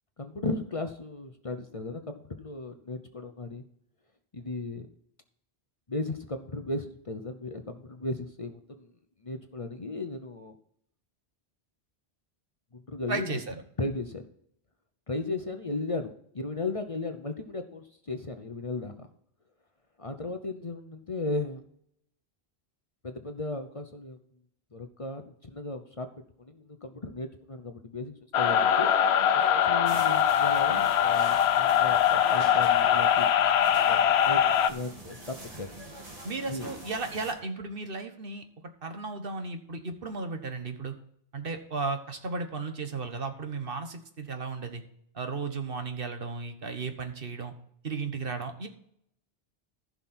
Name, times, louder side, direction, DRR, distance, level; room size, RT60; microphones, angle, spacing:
voice 1, 0.2-3.6 4.3-4.9 5.9-8.9 9.2-10.5 12.7-13.4 13.8-14.2 15.1-19.1 20.0-21.6 23.0-24.2 24.7-26.1 26.4-28.9 29.3-33.3 33.9-34.4 34.7-35.7 36.5-36.7, left 2 dB, 35° left, 7 dB, 0.9 m, -36 dB
voice 2, 13.1-13.6 36.2-38.4 38.8-40.9 41.3-44.8 45.1-47.5 47.8-48.7, right 4 dB, 60° right, 7 dB, 1.4 m, -35 dB
sound 1, 28.3-34.7, left 9 dB, 90° left, 0.9 m, -22 dB
sound 2, 29.8-37.3, right 1 dB, 35° right, 2.2 m, -45 dB
15.0 x 5.9 x 4.4 m, 0.70 s
omnidirectional pair, 1.1 m